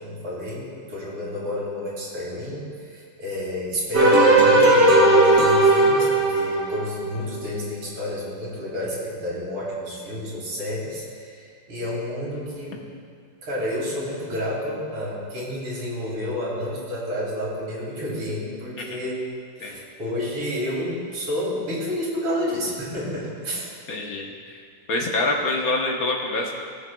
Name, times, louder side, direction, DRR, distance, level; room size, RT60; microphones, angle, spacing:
voice 1, 0.0-12.9 13.4-19.2 19.6-23.7, left 1 dB, 85° right, -5 dB, 3.3 m, -30 dB
sound 1, 3.9-7.2, right 2 dB, 55° right, 1.7 m, -16 dB
voice 2, 23.9-24.6 24.9-26.5, left 2 dB, 50° left, 0 dB, 1.3 m, -26 dB
19.5 x 7.2 x 2.3 m, 2.3 s
omnidirectional pair, 2.4 m